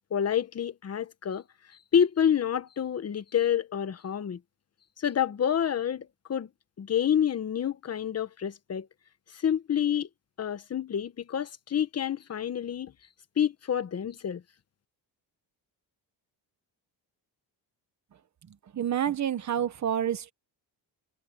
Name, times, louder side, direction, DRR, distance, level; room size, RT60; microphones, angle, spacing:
voice 1, 0.1-1.4 1.9-4.4 5.0-6.5 6.8-8.9 9.3-10.1 10.4-12.9 13.4-14.4, left 9 dB, 35° left, 1.2 m, -28 dB
voice 2, 18.7-20.3, right 9 dB, 40° right, 1.3 m, -28 dB
cardioid pair, 135°, 44 cm